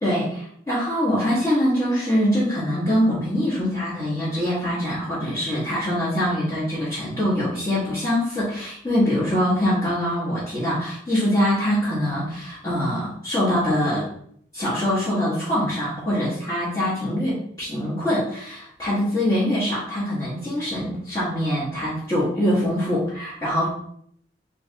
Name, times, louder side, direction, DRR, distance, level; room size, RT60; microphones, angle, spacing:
voice 1, 0.0-14.0 14.5-23.7, equal, 20° left, -12 dB, 1.2 m, -23 dB
3.3 x 2.8 x 3.3 m, 0.66 s
head